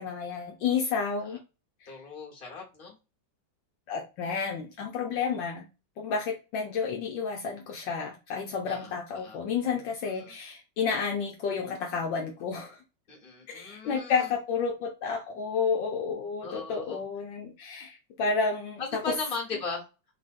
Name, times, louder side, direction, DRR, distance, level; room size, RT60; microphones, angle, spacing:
voice 1, 0.0-1.4 1.8-2.0 3.9-5.6 6.0-12.8 13.5-19.1, left 5 dB, 75° left, 2 dB, 1.3 m, -31 dB
voice 2, 1.9-2.9 8.7-9.4 10.2-10.3 13.1-14.3 16.4-17.0 18.8-19.8, left 3 dB, 30° left, -1 dB, 1.5 m, -38 dB
3.8 x 3.3 x 2.5 m, 0.30 s
omnidirectional pair, 2.2 m